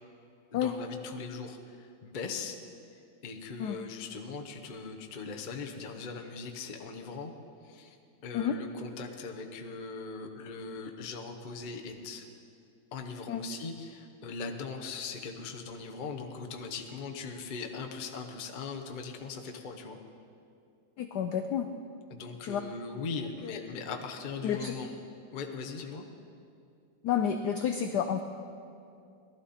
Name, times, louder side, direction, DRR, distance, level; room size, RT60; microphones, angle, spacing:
voice 1, 0.5-2.6 3.2-7.3 7.6-8.0 8.2-12.3 12.9-20.0 22.1-24.9 25.3-26.0, left 4 dB, 55° left, 3 dB, 0.5 m, -40 dB
voice 2, 21.0-21.7 22.4-22.6 23.4-23.5 24.4-24.7 27.0-28.2, left 8 dB, 85° left, 7 dB, 0.9 m, -30 dB
18.5 x 12.5 x 4.2 m, 2.5 s
omnidirectional pair, 2.4 m